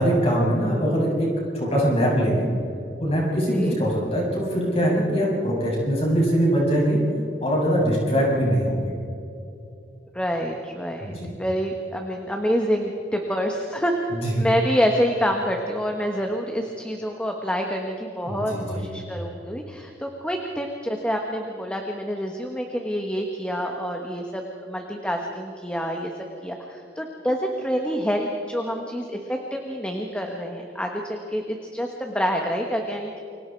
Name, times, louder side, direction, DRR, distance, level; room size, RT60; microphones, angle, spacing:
voice 1, 0.0-2.5 3.0-7.0 7.4-8.9 11.0-11.3 14.1-14.3 18.3-18.8, equal, 35° left, -3 dB, 7.4 m, -22 dB
voice 2, 10.1-11.1 11.4-14.1 14.4-26.1 26.4-33.2, equal, 5° left, 2 dB, 1.4 m, -27 dB
29.0 x 23.5 x 4.7 m, 2.8 s
head